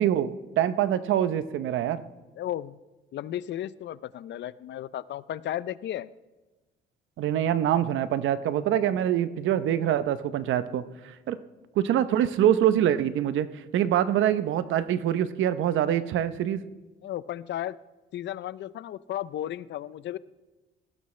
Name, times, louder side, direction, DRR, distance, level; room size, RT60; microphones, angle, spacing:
voice 1, 0.0-2.0 7.2-11.4 11.8-16.6, right 10 dB, 80° right, 13 dB, 0.8 m, -25 dB
voice 2, 2.4-2.8 3.1-6.1 17.0-17.8 18.1-20.2, left 12 dB, 65° left, 18 dB, 0.5 m, -34 dB
19.0 x 15.0 x 3.3 m, 1.1 s
cardioid pair, 90°, 20 cm